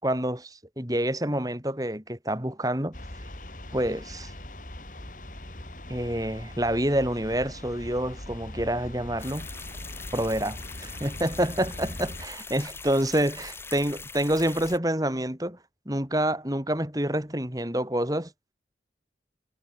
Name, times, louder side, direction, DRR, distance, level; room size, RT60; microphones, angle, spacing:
voice 1, 0.0-3.0 3.7-4.3 5.9-9.5 10.1-15.6 15.9-18.3, right 1 dB, 20° right, 4.2 m, -27 dB
sound 1, 2.9-12.3, left 1 dB, 45° left, 3.7 m, -41 dB
sound 2, 9.2-14.8, left 4 dB, 15° left, 3.0 m, -42 dB
head